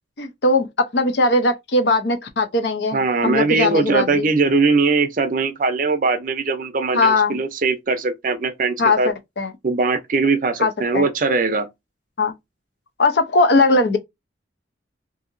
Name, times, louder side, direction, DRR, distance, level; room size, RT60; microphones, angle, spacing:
voice 1, 0.2-4.3 6.9-7.4 8.8-9.5 10.6-11.1 12.2-12.3 13.0-14.0, left 2 dB, 65° left, 0.6 m, -19 dB
voice 2, 2.9-9.1 9.6-11.7, right 4 dB, 45° right, 0.5 m, -20 dB
2.8 x 2.7 x 2.5 m
head